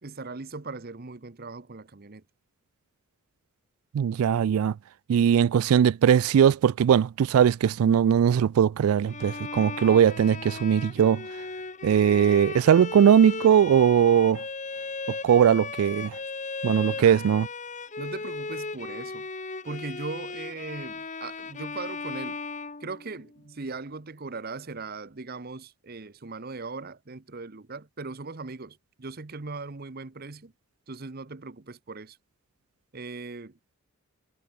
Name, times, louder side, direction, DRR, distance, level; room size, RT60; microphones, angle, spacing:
voice 1, 0.0-2.2 16.9-17.2 18.0-19.3 19.6-22.4 22.8-30.5 30.9-32.2 32.9-33.6, right 3 dB, 45° right, 0.9 m, -39 dB
voice 2, 3.9-4.7 5.1-11.2 11.8-14.4 15.1-16.1 16.6-17.5, right 8 dB, 80° right, 0.3 m, -20 dB
Bowed string instrument, 9.1-23.4, left 4 dB, 35° left, 1.6 m, -37 dB
head